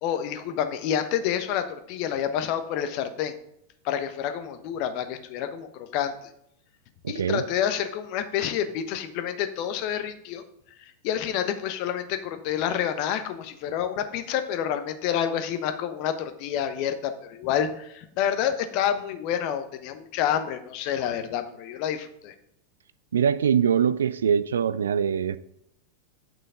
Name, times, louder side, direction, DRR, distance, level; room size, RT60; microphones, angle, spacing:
voice 1, 0.0-3.3 3.8-6.1 7.1-10.4 10.8-22.3, left 9 dB, 45° left, 1.1 m, -28 dB
voice 2, 7.0-7.4 23.1-25.4, right 7 dB, 65° right, 0.4 m, -23 dB
9.1 x 6.3 x 5.1 m
figure-of-eight pair, 90°, 0 cm